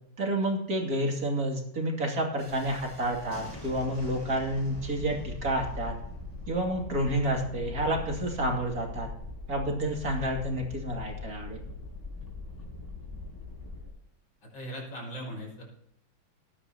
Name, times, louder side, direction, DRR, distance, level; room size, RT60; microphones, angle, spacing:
voice 1, 0.2-5.9 6.5-9.1 9.5-11.6, right 1 dB, 45° right, 0 dB, 2.9 m, -29 dB
Thunderstorm, 2.4-13.9, left 2 dB, 10° left, 4.5 m, -41 dB
voice 2, 14.4-15.7, equal, 65° left, -1 dB, 6.2 m, -39 dB
20.0 x 10.0 x 2.9 m, 0.78 s
omnidirectional pair, 2.3 m